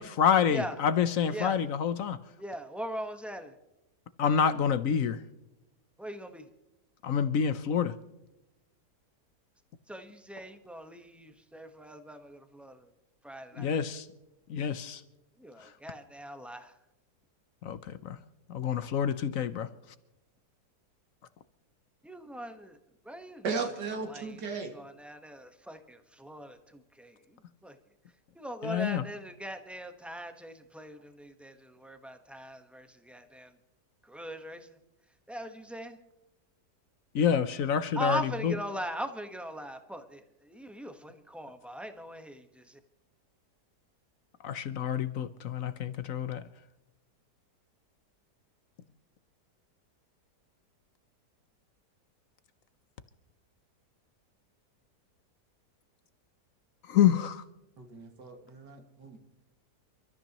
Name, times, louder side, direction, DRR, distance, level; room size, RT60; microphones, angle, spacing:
voice 1, 0.0-2.2 4.2-5.2 7.0-7.9 13.6-14.1 14.5-15.0 17.6-18.2 18.5-19.7 28.6-29.0 37.1-38.6 44.4-46.4 56.9-57.4, left 8 dB, 60° left, 13 dB, 1.0 m, -27 dB
voice 2, 1.3-1.6 2.4-3.5 6.0-6.4 9.9-12.8 13.2-13.7 15.4-16.7 22.0-22.7 23.0-23.4 24.1-24.2 25.0-26.6 27.0-27.1 27.6-27.7 28.4-33.5 34.1-34.7 35.3-36.0 38.0-40.2 40.5-42.6, right 1 dB, ahead, 7 dB, 0.9 m, -40 dB
voice 3, 23.4-24.7 57.8-59.2, right 4 dB, 85° right, 4 dB, 2.6 m, -36 dB
28.5 x 13.5 x 3.0 m, 0.96 s
omnidirectional pair, 1.8 m